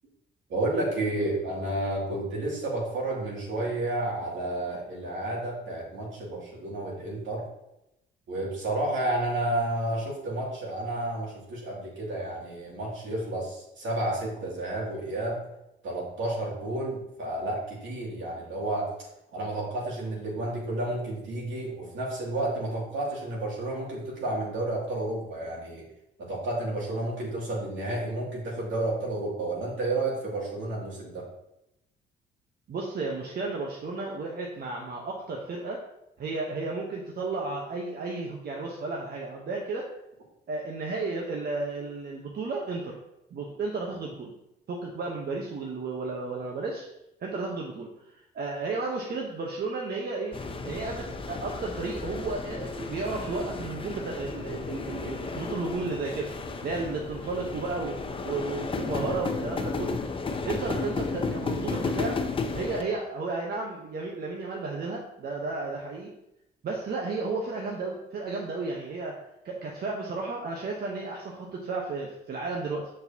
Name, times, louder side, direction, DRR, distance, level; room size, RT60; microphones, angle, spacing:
voice 1, 0.5-7.5 8.3-15.4 15.8-18.9 19.3-25.9 26.2-31.2, right 2 dB, 75° right, -3 dB, 2.5 m, -31 dB
voice 2, 32.7-35.8 36.2-39.9 40.5-43.0 43.3-44.3 44.7-46.9 47.2-56.3 56.6-60.0 60.4-62.2 62.5-66.1 66.6-69.2 69.4-72.9, right 3 dB, 55° right, -1 dB, 1.0 m, -33 dB
sound 1, 50.3-62.8, left 4 dB, 25° left, 0.6 m, -33 dB
6.7 x 6.3 x 2.8 m, 0.86 s
cardioid pair, 90°, 20 cm